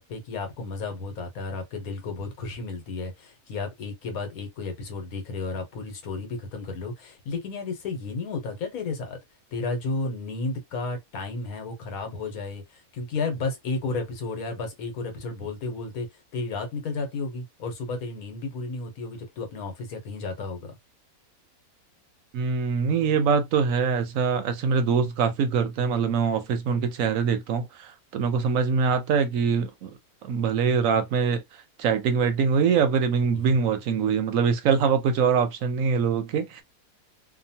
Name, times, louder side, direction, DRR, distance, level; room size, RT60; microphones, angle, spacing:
voice 1, 0.0-9.2 9.5-16.1 16.3-20.8, left 3 dB, 75° left, 1.3 m, -33 dB
voice 2, 22.3-29.9 30.2-31.4 31.8-36.6, right 6 dB, 70° right, 0.9 m, -23 dB
2.9 x 2.2 x 2.7 m
omnidirectional pair, 1.5 m